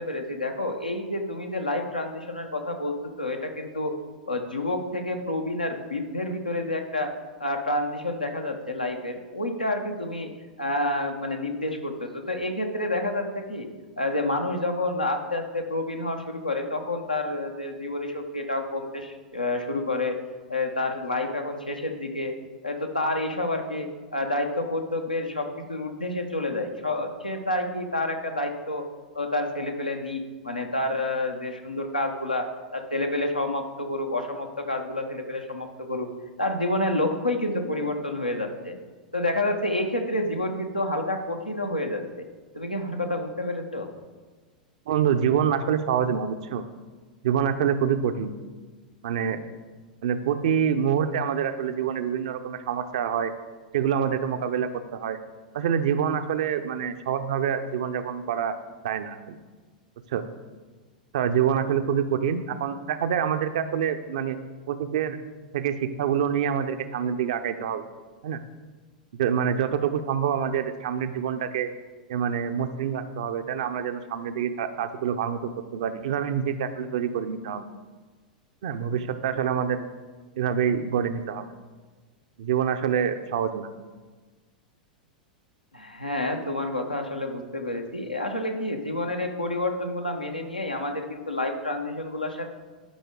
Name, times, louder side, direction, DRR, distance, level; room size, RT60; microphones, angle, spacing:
voice 1, 0.0-4.0 4.3-7.1 7.4-10.3 10.6-13.7 14.0-20.2 20.5-22.3 22.6-28.9 29.1-32.5 32.7-36.1 36.4-38.8 39.1-42.3 42.5-43.9 85.7-92.5, left 1 dB, 85° left, 4 dB, 1.0 m, -29 dB
voice 2, 44.9-46.6 47.2-48.3 49.0-49.4 50.0-53.3 53.7-55.2 55.5-58.6 58.8-59.4 60.1-60.2 61.1-64.4 64.7-65.2 65.5-67.9 68.2-68.4 69.1-71.7 72.1-77.7 78.6-79.8 80.4-81.5 82.4-83.7, right 8 dB, 55° right, 9 dB, 0.6 m, -26 dB
12.5 x 5.3 x 3.7 m, 1.3 s
figure-of-eight pair, 90°, 4 cm